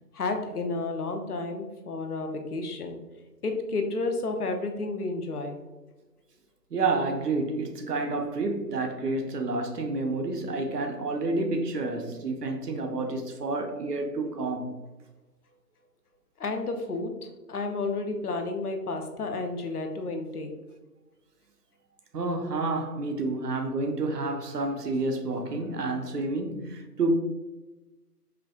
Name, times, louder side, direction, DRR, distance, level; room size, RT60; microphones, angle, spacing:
voice 1, 0.1-3.0 3.4-5.6 16.4-20.5, left 3 dB, 70° left, 0.7 m, -31 dB
voice 2, 6.7-14.8 22.1-27.1, right 3 dB, 80° right, 0.7 m, -29 dB
4.7 x 2.3 x 2.3 m
hypercardioid pair, 180°, 47 cm